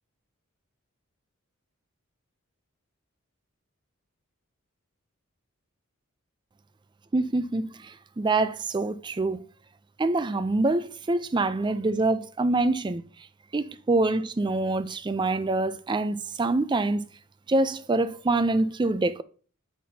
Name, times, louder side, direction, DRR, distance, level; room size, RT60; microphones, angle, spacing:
voice 1, 7.1-9.4 10.0-13.0 13.5-17.0 17.5-19.2, right 2 dB, 20° right, 0.4 m, -25 dB
8.3 x 5.9 x 2.7 m
head